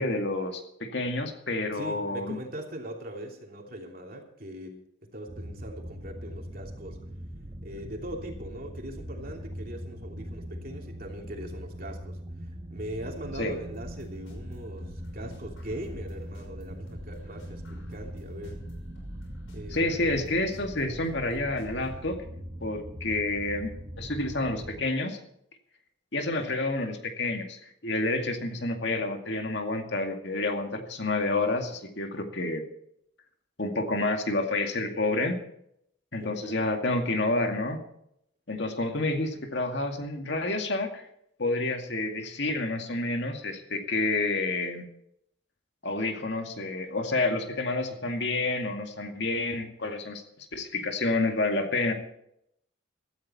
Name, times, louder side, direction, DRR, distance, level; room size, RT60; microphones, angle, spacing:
voice 1, 0.0-2.4 13.4-13.5 19.7-22.2 22.6-25.2 26.1-32.6 33.6-35.4 36.1-37.8 38.5-41.1 41.4-44.8 45.8-51.9, left 2 dB, 55° left, 4 dB, 2.2 m, -29 dB
voice 2, 1.7-4.8 5.0-7.0 7.6-18.7 19.5-19.9 26.3-26.5 36.1-36.7, right 1 dB, 45° right, 2 dB, 3.0 m, -41 dB
sound 1, 5.3-24.8, equal, 30° right, 1.0 m, -41 dB
sound 2, 13.7-22.1, left 1 dB, 85° left, 6.0 m, -50 dB
17.0 x 13.5 x 4.4 m, 0.73 s
head